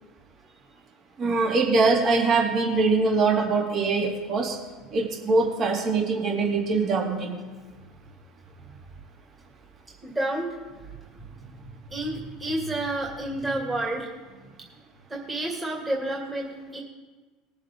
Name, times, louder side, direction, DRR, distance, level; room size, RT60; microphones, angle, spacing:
voice 1, 1.2-4.6 4.9-7.4, right 3 dB, 40° right, 0 dB, 2.4 m, -23 dB
voice 2, 10.0-10.5 11.2-11.6 11.9-14.4 15.1-16.8, right 1 dB, 20° right, -3 dB, 2.4 m, -30 dB
20.0 x 7.2 x 3.7 m, 1.3 s
supercardioid pair, 105°, 0 cm